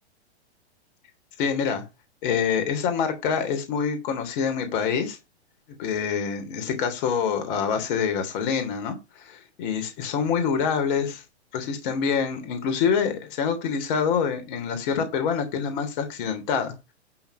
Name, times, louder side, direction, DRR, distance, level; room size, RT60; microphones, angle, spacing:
voice 1, 1.4-1.8 2.2-5.2 5.8-11.2 11.5-16.7, left 6 dB, 50° left, 6 dB, 3.3 m, -26 dB
12.0 x 4.2 x 6.8 m, 0.26 s
hypercardioid pair, 130°, 33 cm